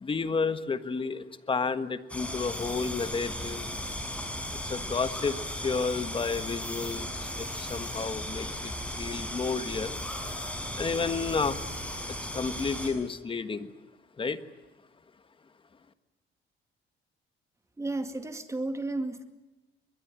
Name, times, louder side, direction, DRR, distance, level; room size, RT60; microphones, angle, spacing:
voice 1, 0.0-3.7 4.7-5.3 5.6-7.1 7.4-8.7 9.0-10.0 10.8-11.6 12.3-13.7 14.2-14.4, left 4 dB, 25° left, 11 dB, 1.4 m, -31 dB
sound 1, 2.1-12.9, left 1 dB, 5° left, 6.4 m, -36 dB
voice 2, 17.8-19.2, right 2 dB, 15° right, 8 dB, 2.2 m, -33 dB
23.0 x 22.0 x 8.8 m, 1.1 s
cardioid pair, 130°, 20 cm